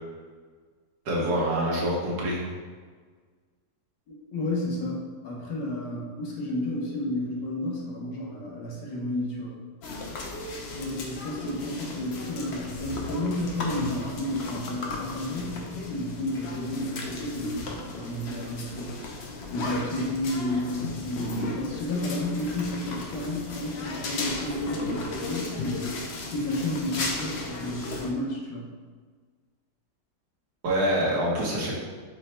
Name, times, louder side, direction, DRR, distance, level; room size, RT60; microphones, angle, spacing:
voice 1, 1.0-2.4 30.6-31.7, right 1 dB, 75° right, -4 dB, 1.6 m, -25 dB
voice 2, 4.1-9.6 10.7-19.2 19.5-28.7, left 1 dB, 85° left, -2 dB, 1.5 m, -32 dB
sound 1, 9.8-28.1, left 3 dB, 70° left, 0.6 m, -35 dB
5.4 x 2.2 x 4.2 m, 1.5 s
omnidirectional pair, 1.7 m